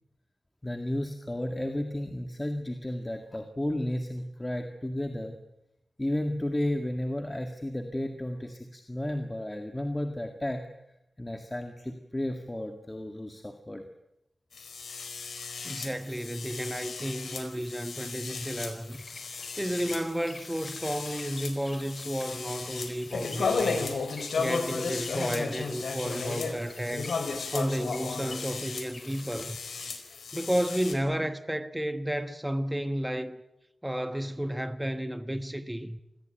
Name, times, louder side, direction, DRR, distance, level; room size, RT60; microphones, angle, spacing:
voice 1, 0.6-5.4 6.0-10.6 11.2-13.9, left 1 dB, 15° left, 2.0 m, -33 dB
sound 1, 14.5-30.9, left 4 dB, 90° left, 4.6 m, -35 dB
voice 2, 15.6-19.0 19.6-24.0 24.4-27.1 27.5-29.6 30.3-33.4 33.8-36.0, equal, 5° right, 1.2 m, -32 dB
sound 2, 18.9-29.9, left 2 dB, 30° left, 4.3 m, -50 dB
28.0 x 20.5 x 9.3 m
wide cardioid pair, 150°, 0 cm